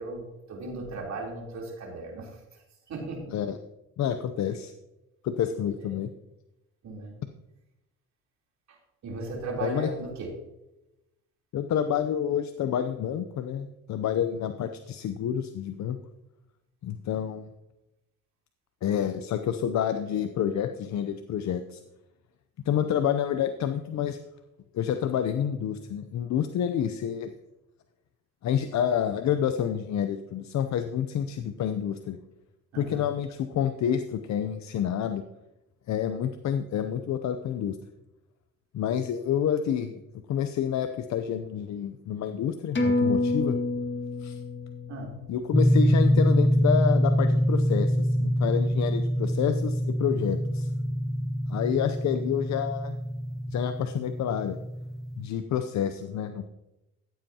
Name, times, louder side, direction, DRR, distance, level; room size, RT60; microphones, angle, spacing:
voice 1, 0.0-2.6 2.9-3.3 5.8-5.9 6.8-7.2 8.7-8.8 9.0-10.3 32.7-33.1 44.9-45.2, right 2 dB, 65° right, -1 dB, 3.5 m, -36 dB
voice 2, 4.0-4.7 5.2-6.1 9.6-9.9 11.5-16.0 16.8-17.4 18.8-21.8 22.7-24.2 24.7-27.3 28.4-32.2 32.8-35.2 35.9-37.8 38.7-40.0 40.3-43.6 44.2-44.4 45.3-50.7 51.5-52.9 53.5-54.6 55.2-56.5, left 9 dB, 65° left, 8 dB, 0.7 m, -28 dB
sound 1, 42.8-47.7 48.1-48.2, left 2 dB, 40° left, 1.9 m, -30 dB
sound 2, 45.5-55.3, equal, ahead, 0.5 m, -25 dB
14.0 x 7.8 x 2.9 m, 0.93 s
cardioid pair, 90°, 30 cm